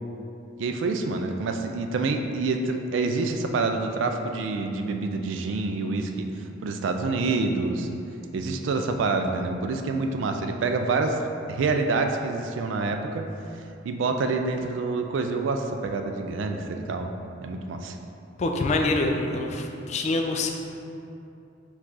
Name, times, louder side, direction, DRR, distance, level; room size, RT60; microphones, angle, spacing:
voice 1, 0.6-6.2 6.6-7.9 8.3-11.2 11.5-13.2 13.8-17.1 17.4-18.0, right 3 dB, 80° right, 5 dB, 0.3 m, -27 dB
voice 2, 18.4-20.5, left 2 dB, 35° left, 3 dB, 0.3 m, -25 dB
4.7 x 2.4 x 3.9 m, 2.7 s
head